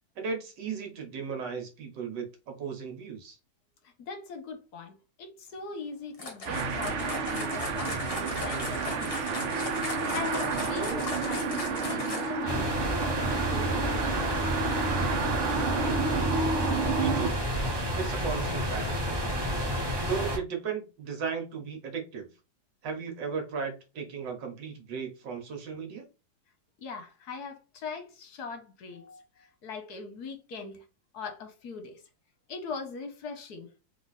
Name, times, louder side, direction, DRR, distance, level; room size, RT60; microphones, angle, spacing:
voice 1, 0.2-3.4 17.0-17.4 18.0-19.0 20.0-22.3 22.8-26.1, right 6 dB, 65° right, 1.6 m, -35 dB
voice 2, 4.0-9.3 10.1-14.9 16.6-16.8 26.8-30.8 31.1-32.0 32.5-33.7, left 4 dB, 60° left, 1.2 m, -41 dB
sound 1, 6.1-12.5, left 2 dB, 35° left, 1.0 m, -37 dB
sound 2, 6.5-17.3, right 4 dB, 80° right, 0.6 m, -30 dB
sound 3, 12.5-20.4, equal, 40° right, 0.3 m, -30 dB
3.6 x 3.1 x 4.0 m
omnidirectional pair, 2.2 m